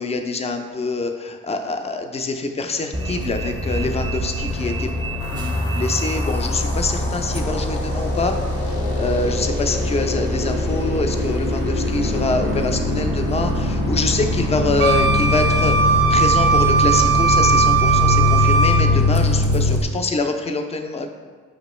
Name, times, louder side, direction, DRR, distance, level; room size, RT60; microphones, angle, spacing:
voice 1, 0.0-5.0 5.7-8.4 9.0-21.1, left 3 dB, 20° left, 6 dB, 0.4 m, -25 dB
Bus, 2.9-19.8, left 1 dB, 15° right, 0.7 m, -25 dB
sound 1, 5.2-19.8, left 2 dB, 85° left, 0.8 m, -24 dB
Wind instrument woodwind instrument, 14.8-18.9, right 5 dB, 55° right, 0.4 m, -18 dB
5.0 x 3.0 x 3.1 m, 1.5 s
cardioid pair, 90°, 30 cm